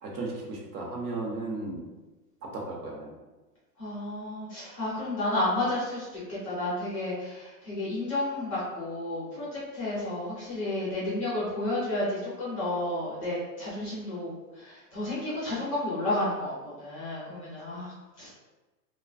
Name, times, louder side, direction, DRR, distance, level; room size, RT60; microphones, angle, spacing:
voice 1, 0.0-1.8 2.4-3.2, right 2 dB, 65° right, -1 dB, 0.9 m, -35 dB
voice 2, 3.8-18.3, left 1 dB, 25° left, -9 dB, 0.4 m, -32 dB
2.4 x 2.3 x 2.3 m, 1.2 s
hypercardioid pair, 140°, 49 cm